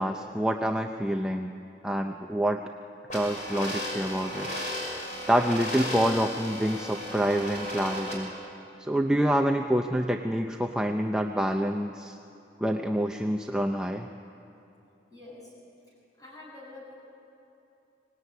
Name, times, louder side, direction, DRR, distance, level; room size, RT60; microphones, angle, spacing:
voice 1, 0.0-1.5 1.8-2.6 3.1-4.5 5.3-8.3 8.8-12.2 12.6-14.1, equal, 5° right, 3 dB, 0.6 m, -27 dB
sound 1, 3.1-8.1, left 1 dB, 45° left, 6.4 m, -35 dB
voice 2, 15.1-15.5 16.2-17.0, left 2 dB, 20° left, -5 dB, 7.7 m, -46 dB
24.0 x 19.0 x 9.6 m, 2.8 s
head